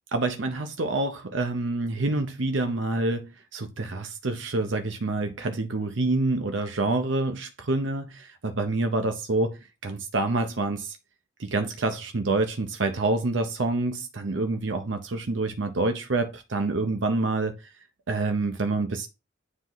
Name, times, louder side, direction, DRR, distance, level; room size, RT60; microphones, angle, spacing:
voice 1, 0.1-11.0 11.4-17.5 18.1-19.1, right 2 dB, 70° right, 0.7 m, -27 dB
9.6 x 3.8 x 3.1 m
head